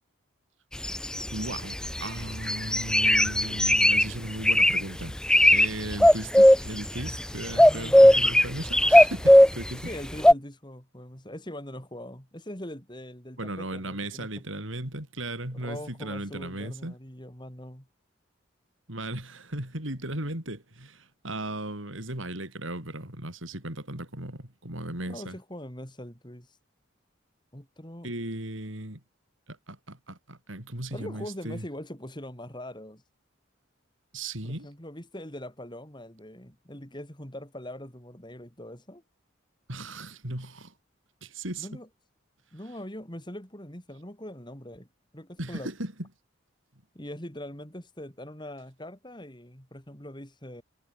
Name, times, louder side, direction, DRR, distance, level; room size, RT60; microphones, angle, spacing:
sound 1, 0.8-2.1 2.5-4.1 4.5-4.8 5.2-5.7 5.9-7.2 7.6-9.7 10.2-10.3, left 1 dB, 5° left, 0.6 m, -17 dB
voice 1, 1.3-5.1 5.5-9.9 13.4-16.9 18.9-25.4 28.0-29.0 29.5-31.6 34.1-34.7 39.7-40.7 41.2-41.7 45.4-46.1, right 1 dB, 75° right, 5.7 m, -36 dB
voice 2, 7.5-8.2 9.8-14.3 15.5-17.9 25.1-26.6 27.5-28.1 30.9-33.0 34.4-39.0 41.6-41.9 42.5-44.9 45.1-45.7 46.9-50.6, left 1 dB, 20° left, 4.0 m, -42 dB
head